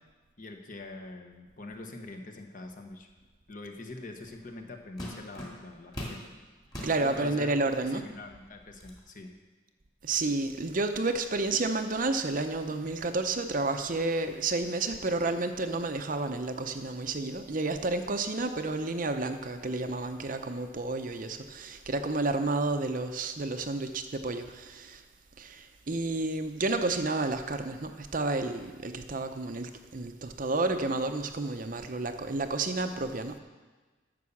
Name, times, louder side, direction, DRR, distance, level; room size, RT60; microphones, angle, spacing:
voice 1, 0.4-3.1 3.5-6.3 7.0-9.3, left 2 dB, 40° left, 4 dB, 1.1 m, -44 dB
sound 1, 4.3-4.5 5.0-6.2 6.7-7.0 7.7-7.8 8.2-9.0, equal, 20° left, 2.2 m, -41 dB
voice 2, 6.8-8.0 10.0-25.0 25.4-33.4, right 3 dB, 45° right, 7 dB, 0.6 m, -31 dB
11.0 x 6.9 x 7.1 m, 1.3 s
head